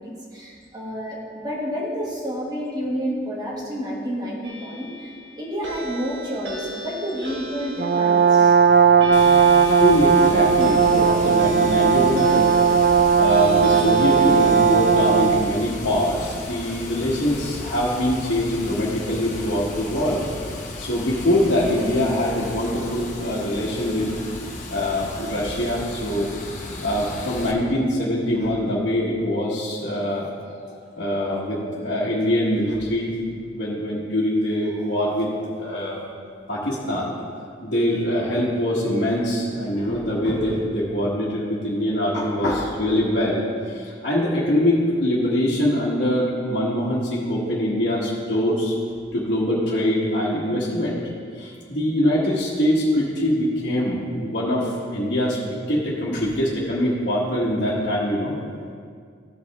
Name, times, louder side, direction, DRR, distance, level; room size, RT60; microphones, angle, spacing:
voice 1, 0.0-8.7 9.1-9.8, equal, 20° right, -4 dB, 1.6 m, -30 dB
sound 1, 4.4-15.7, equal, 70° right, 1.2 m, -37 dB
Brass instrument, 7.8-15.5, right 6 dB, 50° right, 0.3 m, -17 dB
Water, 9.1-27.5, left 2 dB, 40° left, 0.9 m, -35 dB
voice 2, 9.8-12.5 13.2-20.2 20.8-24.1 24.7-26.3 26.8-30.3 30.6-36.0 36.5-37.1 37.6-48.7 49.1-51.0 51.3-58.3, equal, 60° left, -10 dB, 1.5 m, -23 dB
15.0 x 5.1 x 3.5 m, 2.1 s
head